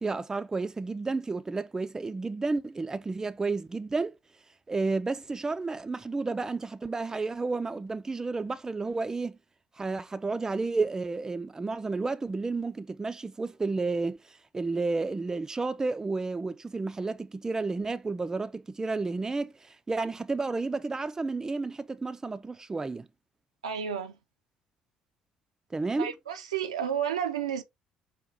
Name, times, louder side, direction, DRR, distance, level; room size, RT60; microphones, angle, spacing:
voice 1, 0.0-4.1 4.7-9.4 9.8-23.1 25.7-26.1, right 3 dB, 15° right, 0.4 m, -31 dB
voice 2, 23.6-24.2 26.0-27.6, right 8 dB, 75° right, 0.5 m, -31 dB
5.7 x 2.3 x 3.6 m
figure-of-eight pair, 50°, 3 cm